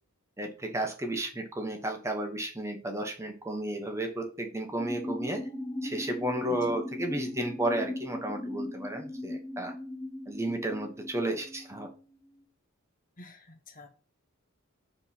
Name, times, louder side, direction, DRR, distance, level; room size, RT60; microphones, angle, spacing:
voice 1, 0.4-5.4 5.8-9.7 10.3-11.9, right 1 dB, 15° right, 3 dB, 1.2 m, -33 dB
sound 1, 4.8-12.2, left 1 dB, 15° left, 0.9 m, -38 dB
voice 2, 13.2-13.9, left 1 dB, 40° left, 5 dB, 1.4 m, -48 dB
6.1 x 4.5 x 5.9 m, 0.38 s
head